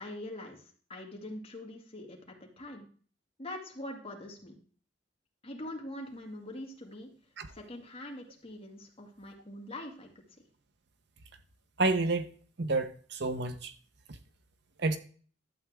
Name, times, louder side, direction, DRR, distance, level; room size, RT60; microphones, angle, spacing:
voice 1, 0.0-2.9 3.4-4.6 5.4-7.1 7.5-10.4, left 1 dB, 30° left, 2.2 m, -43 dB
voice 2, 11.8-12.3 12.6-13.7 14.1-14.2 14.8-15.0, right 3 dB, 60° right, 0.8 m, -29 dB
12.0 x 8.0 x 3.6 m
head